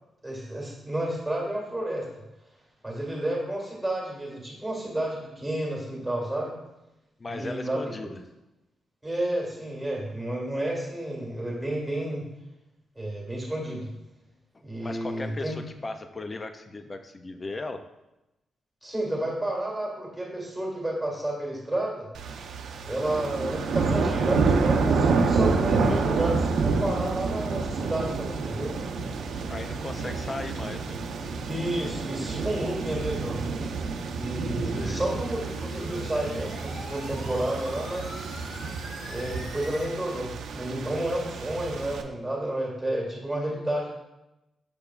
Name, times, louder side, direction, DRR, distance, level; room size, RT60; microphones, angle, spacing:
voice 1, 0.2-2.0 2.8-6.5 7.3-8.1 9.0-12.2 12.9-13.9 14.6-15.5 18.8-22.1 22.9-28.7 31.4-33.4 34.1-38.2 39.1-43.9, right 1 dB, ahead, -3 dB, 1.8 m, -31 dB
voice 2, 7.2-8.2 14.8-17.8 29.5-31.0 34.6-35.0, left 2 dB, 20° left, 7 dB, 0.3 m, -37 dB
sound 1, 22.1-42.0, right 4 dB, 80° right, 0.6 m, -28 dB
sound 2, 34.8-39.9, left 1 dB, 65° left, 1.7 m, -43 dB
6.8 x 6.7 x 2.4 m, 0.95 s
wide cardioid pair, 180°, 0 cm